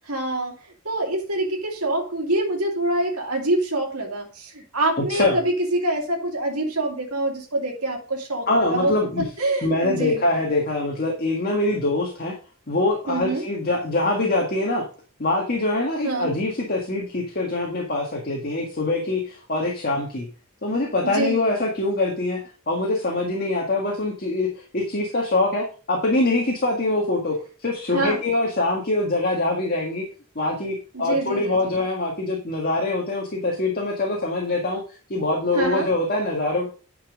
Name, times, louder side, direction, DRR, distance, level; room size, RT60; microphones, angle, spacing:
voice 1, 0.0-8.9 9.4-10.2 13.1-13.5 16.0-16.3 21.0-21.5 27.9-28.2 30.9-31.8 35.5-35.9, right 2 dB, 90° right, 0 dB, 2.6 m, -25 dB
voice 2, 5.0-5.4 8.5-9.3 9.6-12.4 12.7-14.9 15.2-20.3 20.6-22.4 22.7-27.4 27.6-30.1 30.4-34.8 35.1-36.7, left 2 dB, 45° left, 0 dB, 1.8 m, -24 dB
10.0 x 5.4 x 5.2 m, 0.37 s
head